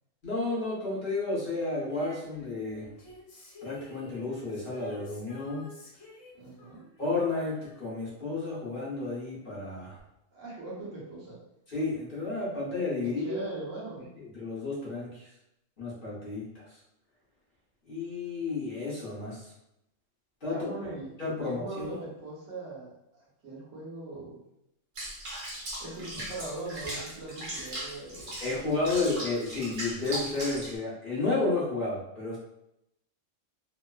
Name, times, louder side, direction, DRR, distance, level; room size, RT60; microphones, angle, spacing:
voice 1, 0.2-2.9 3.6-5.7 7.0-10.0 11.7-13.4 14.3-15.3 15.8-16.8 17.9-19.5 20.4-20.7 21.2-22.0 28.4-32.4, left 3 dB, 50° left, -6 dB, 0.9 m, -32 dB
Female singing, 1.9-8.8 10.0-10.1, equal, 75° left, 1.1 m, -52 dB
voice 2, 6.3-6.8 10.3-11.4 13.0-14.1 20.5-21.1 21.4-24.4 25.8-28.8, right 2 dB, 75° right, -6 dB, 1.3 m, -41 dB
Water / Bathtub (filling or washing), 24.9-30.8, right 1 dB, 45° right, 0.8 m, -38 dB
3.0 x 2.0 x 2.2 m, 0.83 s
omnidirectional pair, 1.3 m